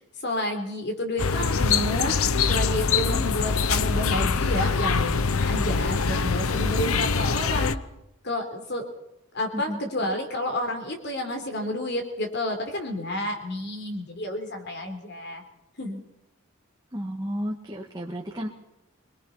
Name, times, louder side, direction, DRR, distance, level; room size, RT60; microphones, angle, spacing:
voice 1, 0.2-7.8 8.2-8.8 9.3-15.4 15.8-16.0, left 1 dB, 50° left, 5 dB, 4.1 m, -30 dB
sound 1, 1.2-7.8, left 5 dB, 75° left, 0.8 m, -24 dB
voice 2, 9.5-10.1 16.9-18.5, equal, 15° right, -2 dB, 1.9 m, -33 dB
25.0 x 21.5 x 5.8 m, 0.90 s
head